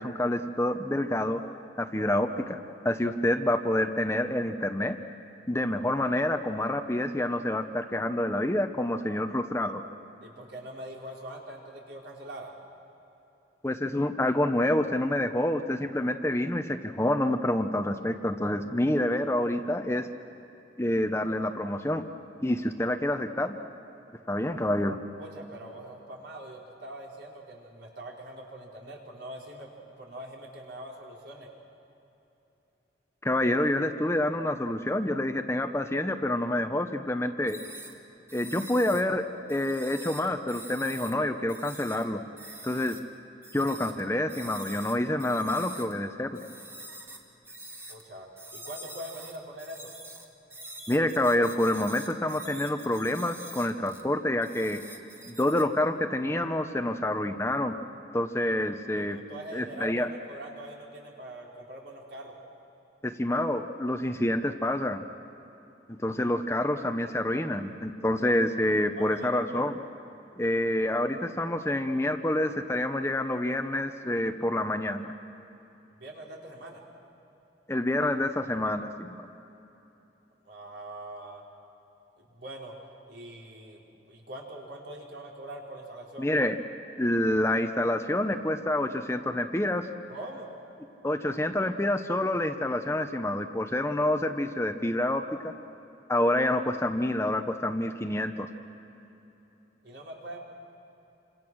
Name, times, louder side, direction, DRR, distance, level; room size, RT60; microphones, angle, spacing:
voice 1, 0.0-1.4 1.8-2.6 2.8-5.0 5.5-9.8 13.6-20.1 20.8-22.0 22.4-23.6 24.3-25.0 33.2-37.6 38.3-42.2 42.6-43.0 43.5-46.4 50.9-54.8 55.3-57.7 58.1-59.2 59.5-60.1 63.0-65.1 65.9-69.8 70.4-75.1 77.7-79.2 86.2-86.6 87.0-89.8 91.0-95.5 96.1-98.5, left 1 dB, 15° left, 7 dB, 0.8 m, -27 dB
voice 2, 10.2-12.5 25.2-31.5 47.9-48.3 48.5-49.9 54.7-54.8 58.9-62.4 68.9-69.6 75.9-76.8 80.4-81.4 82.2-82.7 83.1-86.3 90.1-90.5 99.8-100.4, right 1 dB, 75° right, -2 dB, 4.8 m, -43 dB
sound 1, 37.5-37.9 38.3-39.0 39.5-41.1 41.5-42.0 42.4-43.0 43.4-44.0 44.3-45.9 46.3-48.0 48.4-54.0 54.4-55.6, right 1 dB, 15° right, 2.0 m, -45 dB
28.0 x 26.0 x 6.3 m, 3.0 s
head